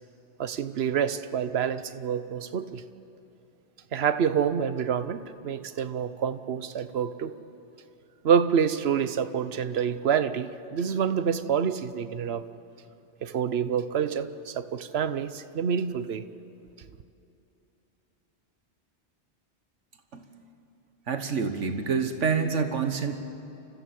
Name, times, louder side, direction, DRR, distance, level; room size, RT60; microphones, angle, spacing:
voice 1, 0.4-2.8 3.9-7.3 8.2-12.4 13.2-16.2, right 7 dB, 60° right, 12 dB, 1.0 m, -27 dB
voice 2, 21.1-23.2, right 5 dB, 80° right, 7 dB, 1.7 m, -27 dB
29.5 x 14.0 x 7.7 m, 2.8 s
omnidirectional pair, 1.2 m